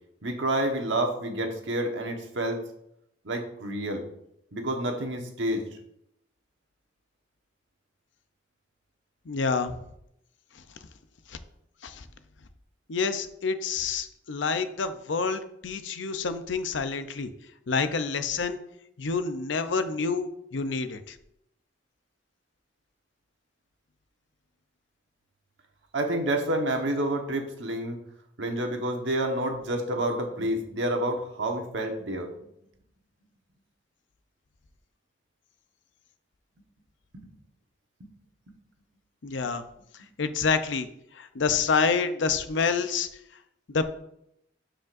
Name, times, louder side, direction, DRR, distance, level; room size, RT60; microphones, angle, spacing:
voice 1, 0.2-2.6 3.2-4.0 4.5-5.7 25.9-28.0 28.4-32.3 37.1-37.3 38.0-38.1, right 1 dB, 80° right, 3 dB, 1.2 m, -29 dB
voice 2, 9.3-9.7 11.8-12.0 12.9-17.3 17.7-18.6 19.0-21.1 39.2-39.6 40.2-40.9 41.2-43.1 43.7-43.8, left 5 dB, 80° left, 10 dB, 0.6 m, -28 dB
12.0 x 5.1 x 2.6 m, 0.77 s
head